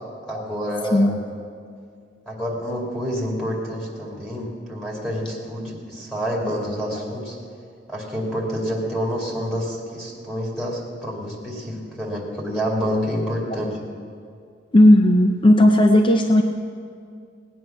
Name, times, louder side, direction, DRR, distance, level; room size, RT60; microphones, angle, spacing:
voice 1, 0.2-1.2 2.3-7.4 7.9-13.8, equal, 5° left, -4 dB, 2.5 m, -28 dB
voice 2, 14.7-16.4, left 1 dB, 30° left, 5 dB, 0.6 m, -14 dB
18.5 x 9.4 x 6.0 m, 2.3 s
head